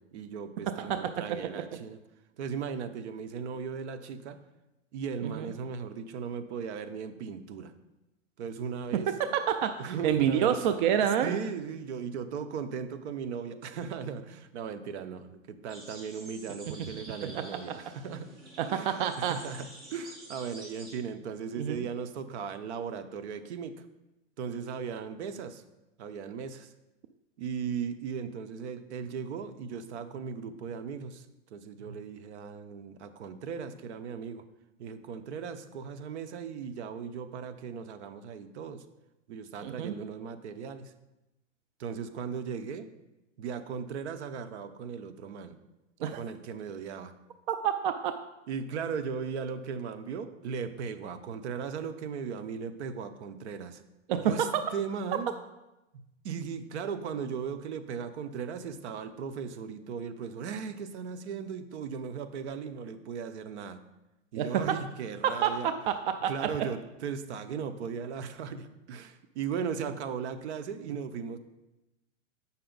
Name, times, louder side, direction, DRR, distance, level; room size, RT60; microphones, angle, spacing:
voice 1, 0.0-2.0 2.4-4.4 4.9-7.7 8.4-9.1 9.8-10.6 11.2-18.3 18.7-23.8 24.4-25.6 26.0-26.7 27.4-31.3 31.5-34.4 34.8-38.8 39.3-40.9 41.8-42.9 43.4-45.6 46.2-47.1 48.5-53.8 54.2-55.3 56.2-63.8 64.3-65.7 66.3-71.4, right 6 dB, 65° right, 10 dB, 0.8 m, -37 dB
voice 2, 5.2-5.5 8.9-11.4 16.8-16.9 17.2-17.4 18.6-19.4 21.5-21.9 39.6-39.9 46.0-46.2 47.5-48.1 54.1-54.5 64.4-64.8 65.2-66.5, right 9 dB, 45° right, 8 dB, 0.4 m, -28 dB
sound 1, 15.7-20.9, right 1 dB, 25° right, 2.1 m, -49 dB
7.8 x 5.7 x 3.9 m, 0.96 s
hypercardioid pair, 140°, 37 cm